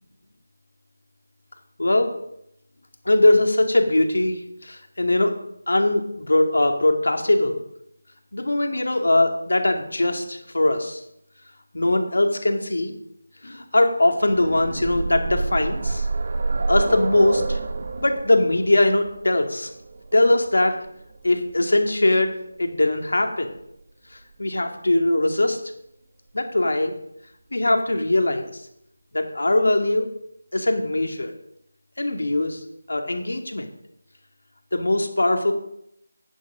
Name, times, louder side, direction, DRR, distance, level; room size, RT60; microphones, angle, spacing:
voice 1, 1.8-2.2 3.1-5.3 5.7-7.6 8.3-11.0 11.7-12.9 13.4-16.1 16.7-17.6 18.0-19.7 20.1-20.8 21.2-22.3 22.6-23.5 24.4-25.6 26.3-27.0 27.5-28.5 29.1-30.1 30.5-31.3 32.0-32.6 32.9-33.7 34.7-35.5, left 1 dB, 80° left, 4 dB, 2.3 m, -21 dB
sound 1, 14.1-21.9 23.0-23.1 23.5-23.6, right 3 dB, 40° right, 0.9 m, -28 dB
11.0 x 9.4 x 5.0 m, 0.78 s
figure-of-eight pair, 170°, 0 cm